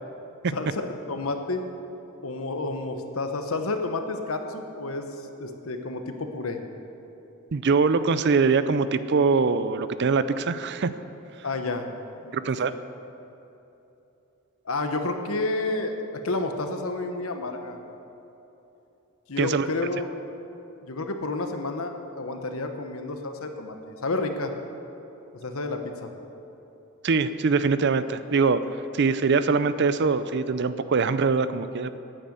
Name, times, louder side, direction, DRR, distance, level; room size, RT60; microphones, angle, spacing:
voice 1, 0.5-0.8 1.1-1.6 2.2-6.6 11.4-11.9 12.2-12.8 14.6-16.0 16.2-17.8 19.3-20.1 20.8-24.5 25.3-26.1, left 2 dB, 75° left, 6 dB, 1.1 m, -30 dB
voice 2, 7.5-10.9 12.3-12.7 19.4-19.7 27.0-28.6 28.9-32.0, right 4 dB, 55° right, 13 dB, 0.5 m, -23 dB
10.5 x 9.1 x 8.0 m, 3.0 s
head